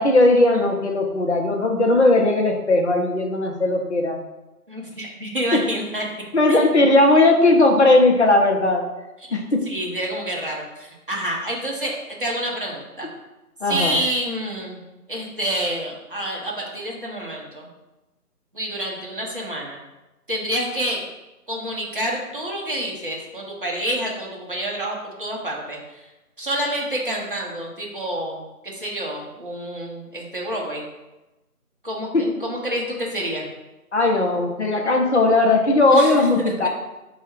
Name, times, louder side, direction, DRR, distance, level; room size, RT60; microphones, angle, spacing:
voice 1, 0.0-4.2 5.5-5.6 6.3-8.8 9.3-9.6 13.6-14.0 32.1-32.3 33.9-36.7, left 2 dB, 50° left, 1 dB, 0.6 m, -17 dB
voice 2, 4.7-6.0 6.5-6.7 9.2-9.4 9.6-13.1 13.6-17.7 18.5-19.8 20.3-21.0 21.5-26.1 26.4-30.8 31.8-33.5 35.9-36.7, right 1 dB, 35° right, -3 dB, 0.7 m, -28 dB
4.1 x 2.3 x 4.6 m, 1.0 s
figure-of-eight pair, 160°, 45 cm